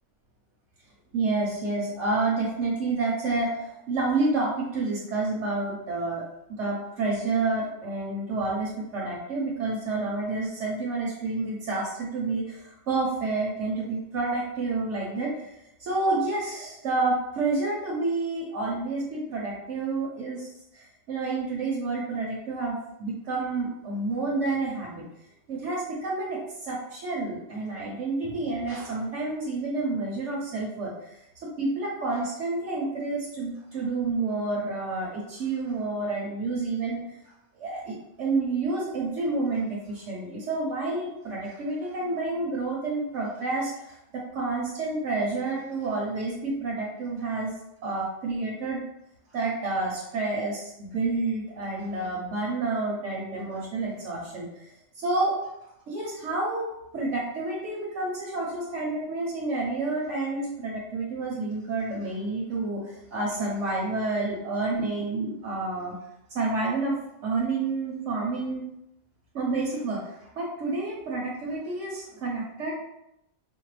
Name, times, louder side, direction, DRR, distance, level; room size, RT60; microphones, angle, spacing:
voice 1, 1.1-6.2 6.5-15.5 15.8-25.0 25.5-37.2 37.6-47.5 47.8-48.8 49.3-55.4 55.9-65.9 66.3-68.7 69.3-72.8, right 3 dB, 80° right, -4 dB, 1.1 m, -29 dB
4.4 x 2.1 x 3.2 m, 0.85 s
omnidirectional pair, 1.2 m